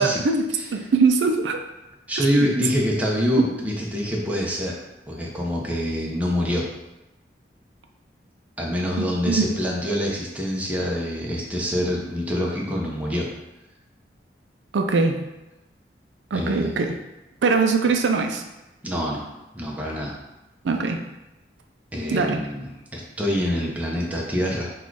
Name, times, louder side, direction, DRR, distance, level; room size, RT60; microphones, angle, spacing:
voice 1, 0.0-0.5 0.7-1.6 9.0-9.4 14.7-15.2 16.3-16.9 17.4-18.4 20.6-21.0 22.1-22.4, right 4 dB, 80° right, 5 dB, 0.4 m, -21 dB
voice 2, 2.1-4.8 5.1-6.7 8.6-13.3 16.3-16.8 18.8-19.2 19.5-20.2 21.9-24.7, equal, 10° right, -3 dB, 0.6 m, -25 dB
4.1 x 2.4 x 4.6 m, 0.98 s
head